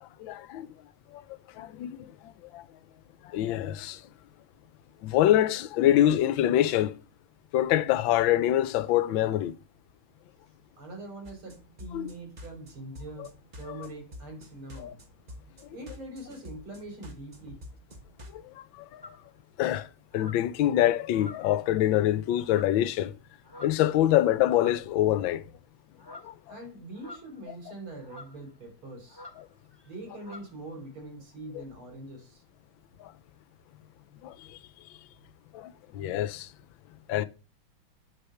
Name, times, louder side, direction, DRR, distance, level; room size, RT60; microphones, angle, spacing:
voice 1, 0.0-0.7 1.1-1.2 1.5-2.7 3.2-4.0 5.0-7.0 7.5-9.5 11.9-12.1 13.2-13.3 13.6-13.9 14.8-14.9 18.3-19.2 19.6-23.2 23.6-25.5 26.1-26.3 29.4-29.5 31.5-31.6 33.0-33.1 34.2-34.6 34.9-35.0 35.5-36.5 37.1-37.3, left 12 dB, 70° left, 1.4 m, -26 dB
voice 2, 10.8-15.0 15.7-17.6 26.5-29.2 29.9-32.4, right 1 dB, 75° right, 4.3 m, -43 dB
sound 1, 11.2-18.4, left 1 dB, 25° right, 1.0 m, -48 dB
sound 2, 19.0-19.3 20.1-20.5 21.1-21.7 22.4-22.8 23.4-23.9 24.5-24.9 26.0-26.4 27.0-27.5 28.0-28.4 29.1-29.4 29.7-29.9 30.2-30.5, left 2 dB, 10° right, 1.9 m, -47 dB
9.1 x 6.7 x 5.7 m
omnidirectional pair, 2.3 m